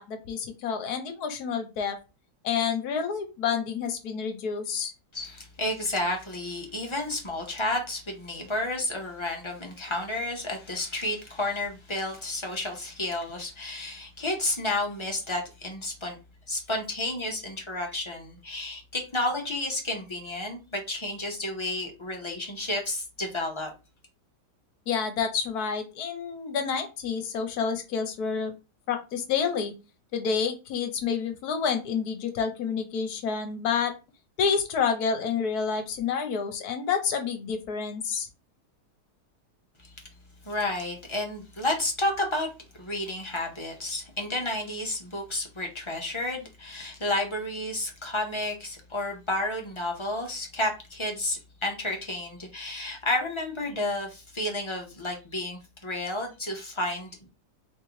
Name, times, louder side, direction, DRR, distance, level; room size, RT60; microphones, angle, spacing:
voice 1, 0.0-2.0 2.4-4.9 24.9-28.5 28.9-29.7 30.1-33.9 34.4-38.3, left 6 dB, 70° left, 7 dB, 1.2 m, -29 dB
voice 2, 5.1-16.2 16.5-23.7 40.4-42.5 42.7-57.3, left 1 dB, 25° left, 1 dB, 0.6 m, -31 dB
3.7 x 3.2 x 3.1 m, 0.29 s
omnidirectional pair, 1.8 m